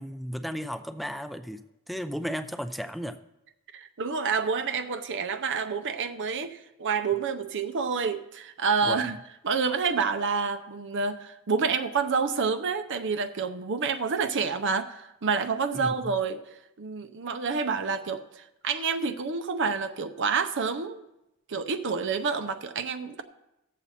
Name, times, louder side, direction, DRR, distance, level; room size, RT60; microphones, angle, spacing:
voice 1, 0.0-3.2 8.8-9.1 15.7-16.1, equal, ahead, 8 dB, 0.5 m, -34 dB
voice 2, 3.7-9.2 9.4-16.4 16.8-21.0 21.5-23.2, right 5 dB, 55° right, 9 dB, 0.7 m, -28 dB
17.5 x 7.3 x 4.2 m, 0.91 s
head